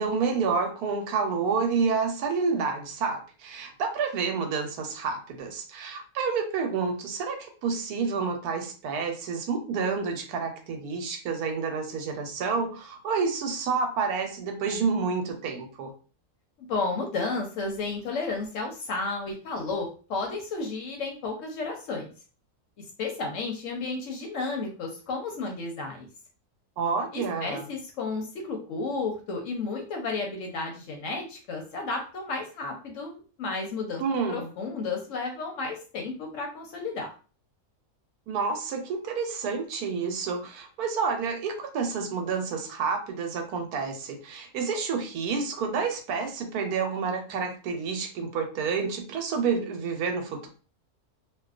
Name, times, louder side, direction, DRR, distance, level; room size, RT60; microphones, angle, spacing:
voice 1, 0.0-15.9 26.8-27.6 34.0-34.5 38.3-50.5, right 5 dB, 80° right, 5 dB, 1.1 m, -29 dB
voice 2, 16.6-22.1 22.8-26.1 27.1-34.0 34.3-37.1, left 3 dB, 65° left, 2 dB, 0.8 m, -32 dB
2.5 x 2.2 x 2.3 m, 0.37 s
omnidirectional pair, 1.6 m